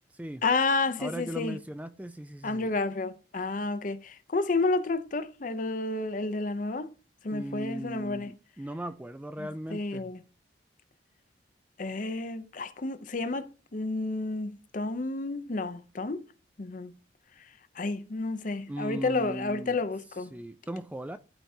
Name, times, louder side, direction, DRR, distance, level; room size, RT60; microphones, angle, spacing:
voice 1, 0.4-1.6 2.4-6.9 7.2-8.3 9.7-10.2 11.8-16.2 16.6-16.9 17.8-20.3, left 3 dB, 45° left, 0.6 m, -30 dB
voice 2, 1.0-2.7 7.3-10.1 18.7-19.8 20.3-21.2, right 1 dB, 10° right, 0.3 m, -38 dB
12.5 x 4.5 x 2.7 m
head